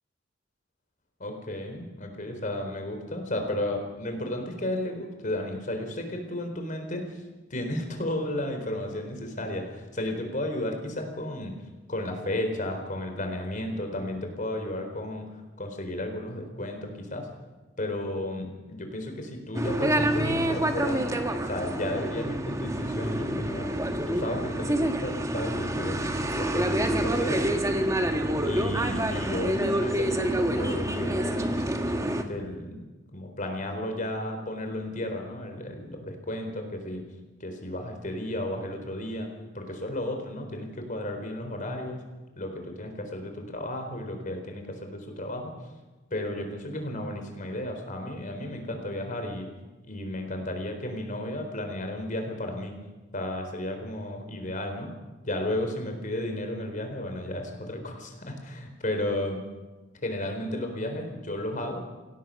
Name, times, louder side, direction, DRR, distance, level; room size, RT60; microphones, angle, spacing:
voice 1, 1.2-7.2 7.5-11.5 11.9-15.3 15.6-17.3 17.8-21.2 21.4-23.7 24.1-26.0 26.3-27.9 28.4-31.6 32.0-32.8 33.1-37.0 37.4-39.3 39.5-42.0 42.4-45.5 46.1-49.5 49.9-52.7 53.1-54.9 55.2-59.4 60.0-61.8, left 1 dB, 45° left, 5 dB, 4.1 m, -33 dB
sound 1, 19.5-32.2, right 1 dB, 15° right, 1.6 m, -27 dB
25.5 x 17.5 x 6.5 m, 1.2 s
head